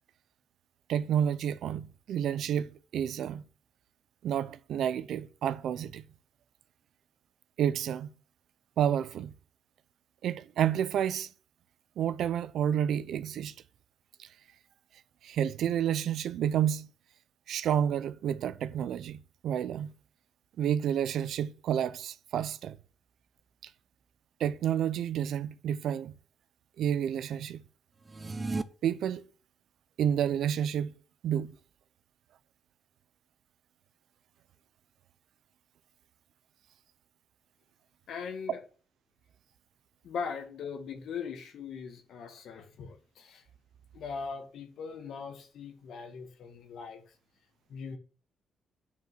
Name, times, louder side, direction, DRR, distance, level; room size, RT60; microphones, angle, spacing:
voice 1, 0.9-3.4 4.2-6.0 7.6-8.1 8.8-9.3 10.2-11.3 12.0-13.5 14.2-14.3 15.2-16.9 17.5-19.9 20.6-22.8 24.4-26.1 26.8-27.6 28.8-29.3 30.0-30.9 31.2-31.5, right 9 dB, 75° right, 0.7 m, -30 dB
sound 1, 28.0-28.6, right 3 dB, 20° right, 0.5 m, -33 dB
voice 2, 38.1-38.6 40.0-43.4 43.9-47.0 47.7-48.0, left 6 dB, 65° left, 2.0 m, -40 dB
9.2 x 5.5 x 7.7 m
wide cardioid pair, 180°, 0 cm